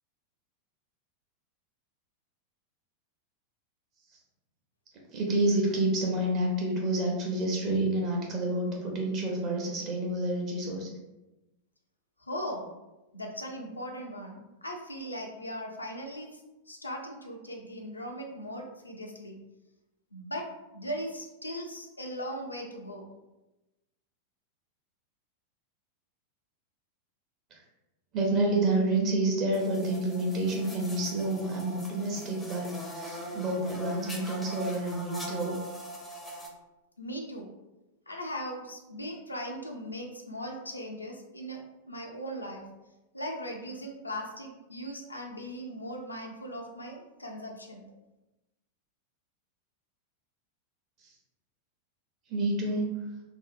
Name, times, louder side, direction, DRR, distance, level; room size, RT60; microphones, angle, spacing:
voice 1, 5.1-11.0 27.5-27.6 28.1-35.6 52.3-52.8, right 2 dB, 35° right, -1 dB, 0.7 m, -29 dB
voice 2, 12.2-12.7 13.1-16.4 16.7-19.4 20.1-20.4 20.7-23.0 37.0-37.5 38.1-41.6 41.9-42.6 43.1-47.8, equal, 85° left, 1 dB, 0.4 m, -39 dB
sound 1, 29.5-36.5, equal, 10° left, 0.5 m, -41 dB
2.7 x 2.0 x 2.4 m, 1.0 s
figure-of-eight pair, 90°, 0 cm